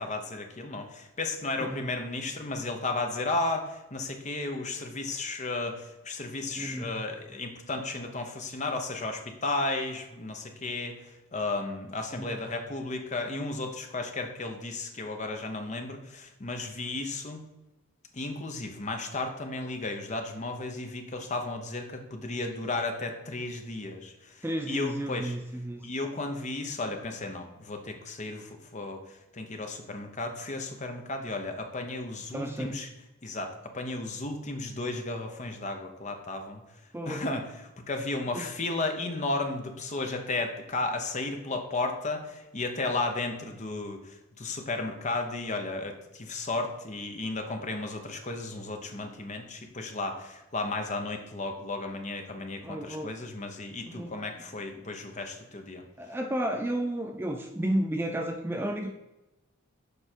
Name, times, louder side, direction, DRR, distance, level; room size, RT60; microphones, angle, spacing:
voice 1, 0.0-11.0 11.3-17.4 18.1-25.4 25.8-29.0 29.3-32.9 33.2-36.6 37.1-55.8, left 2 dB, 30° left, 4 dB, 0.8 m, -34 dB
voice 2, 1.6-1.9 6.6-7.0 12.1-12.4 24.4-25.8 32.3-32.7 36.9-37.3 38.3-38.5 52.6-53.1 53.9-54.1 56.0-58.9, right 1 dB, 10° right, 4 dB, 0.3 m, -32 dB
6.8 x 4.8 x 4.4 m, 1.0 s
head